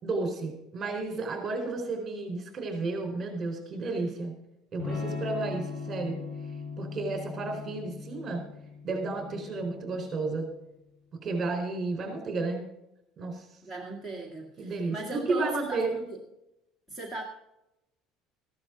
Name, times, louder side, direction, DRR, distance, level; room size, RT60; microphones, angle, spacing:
voice 1, 0.0-4.3 4.7-6.2 6.8-8.4 8.8-10.5 11.2-12.6 13.2-13.5 14.6-16.0, right 3 dB, 25° right, 4 dB, 4.2 m, -32 dB
Electric guitar / Strum, 4.8-10.5, left 4 dB, 30° left, 5.2 m, -39 dB
voice 2, 13.6-16.2 16.9-17.2, right 2 dB, 10° left, 0 dB, 1.8 m, -38 dB
15.0 x 11.5 x 3.9 m, 0.87 s
cardioid pair, 155°, 0 cm